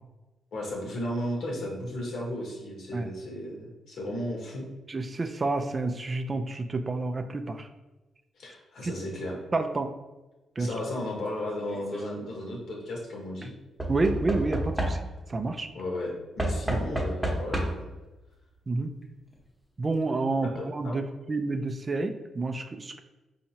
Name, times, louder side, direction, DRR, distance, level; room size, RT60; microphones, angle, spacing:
voice 1, 0.5-4.6 8.4-9.4 10.6-13.5 15.7-17.9 20.5-20.9, left 1 dB, 70° left, -2 dB, 1.1 m, -34 dB
voice 2, 4.9-7.7 8.8-8.9 9.5-9.9 10.6-10.7 13.9-15.0 15.3-15.7 16.7-16.8 18.7-18.9 19.8-21.0 21.3-23.0, right 3 dB, 35° right, 8 dB, 0.3 m, -29 dB
Knock / Wood, 11.6-12.1 13.8-15.3 16.4-18.0 19.0-19.1 19.3-19.4, right 1 dB, 5° right, 0.9 m, -30 dB
4.2 x 2.8 x 2.8 m, 1.1 s
cardioid pair, 70°, 0 cm